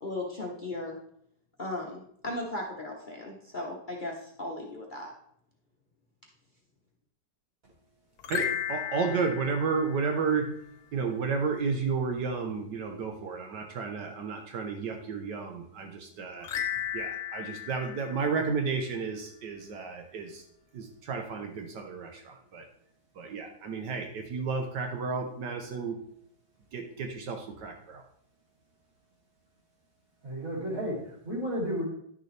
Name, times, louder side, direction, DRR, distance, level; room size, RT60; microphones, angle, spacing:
voice 1, 0.0-1.0 1.6-5.1, left 2 dB, 35° left, -2 dB, 1.0 m, -36 dB
sound 1, 8.2-10.7 16.4-19.0, left 10 dB, 65° left, 1.3 m, -36 dB
voice 2, 8.3-10.5 10.9-16.5 16.9-20.4 20.7-22.7 23.1-26.0 26.7-28.0, right 5 dB, 75° right, 4 dB, 1.5 m, -32 dB
voice 3, 30.2-31.8, equal, 50° right, -4 dB, 3.4 m, -32 dB
10.5 x 6.7 x 3.3 m, 0.69 s
omnidirectional pair, 1.9 m